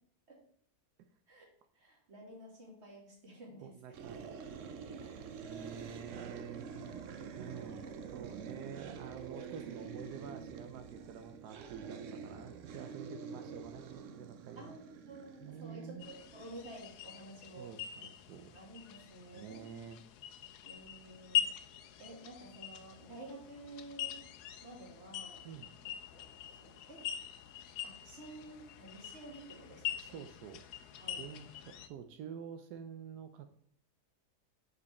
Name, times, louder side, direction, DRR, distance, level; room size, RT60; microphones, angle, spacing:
voice 1, 1.7-4.0 4.9-5.9 7.6-8.0 8.2-8.6 14.6-17.7 18.5-19.7 20.6-21.6 22.0-24.2 24.6-25.4 26.1-27.1 27.8-30.2 31.0-31.5, right 1 dB, 45° right, -1 dB, 2.2 m, -52 dB
voice 2, 3.6-4.6 5.4-6.7 7.4-14.7 15.4-16.0 17.6-18.6 19.3-20.0 25.4-25.7 30.0-30.6 31.2-33.5, right 8 dB, 85° right, 8 dB, 1.2 m, -48 dB
sound 1, 3.9-16.8, right 6 dB, 60° right, 0.9 m, -47 dB
sound 2, 16.0-31.9, left 10 dB, 90° left, 1.2 m, -43 dB
6.9 x 5.3 x 4.2 m, 0.65 s
omnidirectional pair, 1.7 m